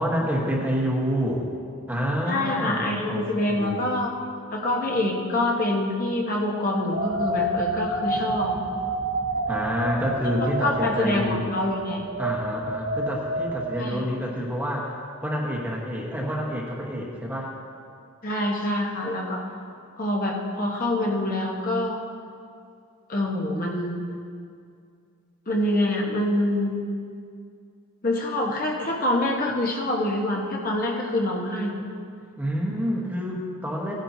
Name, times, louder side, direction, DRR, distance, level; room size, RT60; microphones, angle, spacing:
voice 1, 0.0-1.5 1.9-3.9 9.5-11.4 12.2-14.9 15.2-17.5 32.4-33.9, equal, 10° right, -2 dB, 1.3 m, -28 dB
voice 2, 2.3-4.1 4.5-8.5 10.4-12.0 13.8-14.0 18.2-19.4 20.0-22.0 23.1-24.0 25.5-26.8 28.0-31.8, left 1 dB, 40° left, -1 dB, 1.2 m, -26 dB
sound 1, 6.9-14.2, right 1 dB, 55° right, 1.1 m, -29 dB
17.0 x 10.5 x 2.8 m, 2.3 s
head